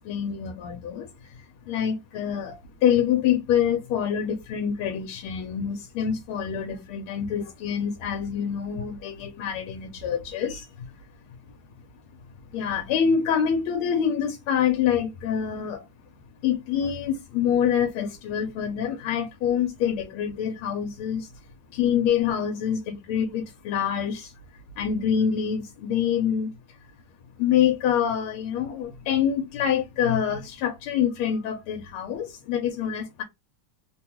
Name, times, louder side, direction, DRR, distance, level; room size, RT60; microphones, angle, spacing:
voice 1, 0.1-1.1 1.7-10.6 12.5-15.8 16.4-21.3 21.7-24.3 24.8-26.5 27.4-33.2, left 8 dB, 90° left, 1.5 m, -26 dB
3.7 x 2.2 x 2.9 m
omnidirectional pair, 2.3 m